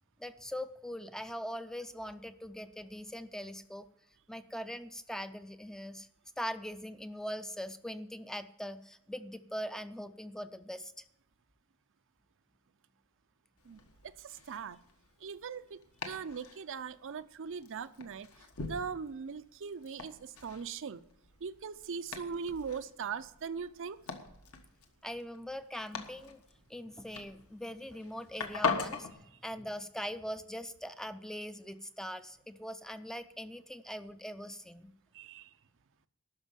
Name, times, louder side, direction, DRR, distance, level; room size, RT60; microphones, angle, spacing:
voice 1, 0.2-3.9 4.3-6.1 6.4-11.0 25.0-26.4 26.7-29.1 29.4-34.9, equal, ahead, 0.4 m, -41 dB
Domestic sounds home sounds, 13.6-29.1, left 4 dB, 70° left, 1.5 m, -42 dB
voice 2, 14.2-14.8 15.2-15.8 16.1-18.3 18.6-21.0 21.4-24.0 35.1-35.5, right 6 dB, 60° right, 0.5 m, -40 dB
12.5 x 5.4 x 9.0 m
head